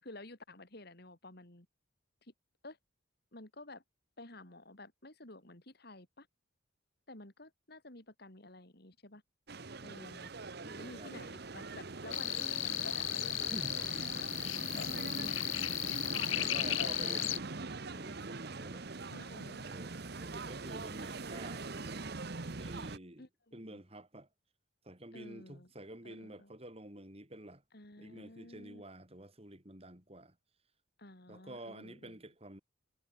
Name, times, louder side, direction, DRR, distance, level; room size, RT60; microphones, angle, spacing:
voice 1, 0.0-1.7 2.2-2.3 2.6-2.8 3.3-3.8 4.2-6.3 7.1-9.2 9.8-10.3 10.8-13.7 14.7-15.5 16.3-16.9 19.1-19.6 23.2-23.8 25.1-25.7 26.0-26.5 27.7-28.9 31.0-32.2, left 2 dB, 55° left, 3.5 m, -52 dB
sound 1, 9.5-23.0, right 3 dB, 55° right, 1.1 m, -42 dB
voice 2, 10.6-11.3 13.5-13.8 14.8-15.4 16.3-18.9 19.6-22.2 22.6-23.3 23.5-24.3 24.8-27.6 28.0-30.4 31.3-32.6, right 1 dB, 30° right, 4.0 m, -49 dB
sound 2, 12.1-17.4, left 15 dB, 80° left, 0.8 m, -35 dB
head